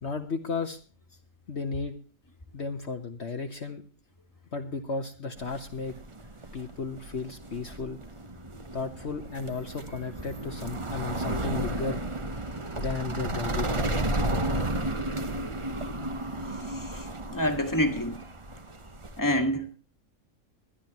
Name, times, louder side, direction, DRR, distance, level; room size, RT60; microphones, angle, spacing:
voice 1, 0.0-0.8 1.5-2.0 2.5-3.8 4.5-5.9 6.5-8.0 8.7-12.0 12.8-14.3, left 4 dB, 50° left, 1.4 m, -34 dB
sound 1, 5.4-19.2, right 1 dB, 25° right, 1.0 m, -33 dB
voice 2, 16.7-18.2 19.2-19.8, equal, 15° left, 1.9 m, -28 dB
21.5 x 11.5 x 3.0 m
omnidirectional pair, 1.5 m